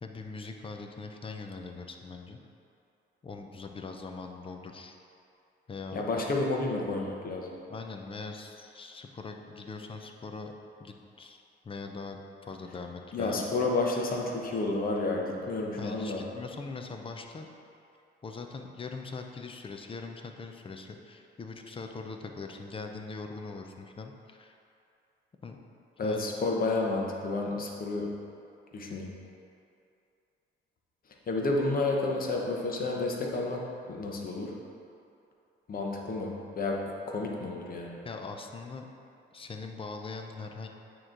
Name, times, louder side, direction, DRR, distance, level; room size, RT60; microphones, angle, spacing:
voice 1, 0.0-2.4 3.2-5.0 5.7-6.2 7.7-10.5 10.8-13.4 15.3-15.4 15.8-17.5 18.2-24.6 25.4-25.6 26.0-26.3 38.0-38.9 39.3-40.7, left 4 dB, 25° left, 4 dB, 0.5 m, -41 dB
voice 2, 5.9-7.5 13.1-16.2 26.0-28.1 28.7-29.1 31.3-34.5 35.7-36.8 37.1-38.0, left 2 dB, 45° left, -1 dB, 0.9 m, -30 dB
8.7 x 3.1 x 3.8 m, 2.6 s
cardioid pair, 90°, 20 cm